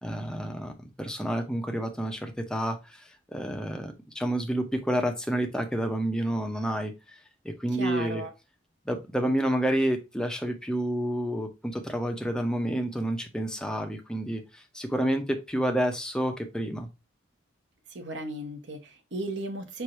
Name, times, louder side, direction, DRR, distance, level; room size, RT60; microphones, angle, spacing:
voice 1, 0.0-6.9 7.4-8.2 8.9-16.9, right 1 dB, 5° left, 5 dB, 0.6 m, -29 dB
voice 2, 7.8-8.3 17.9-19.8, right 1 dB, 60° right, 4 dB, 1.0 m, -35 dB
4.7 x 2.6 x 4.2 m, 0.25 s
head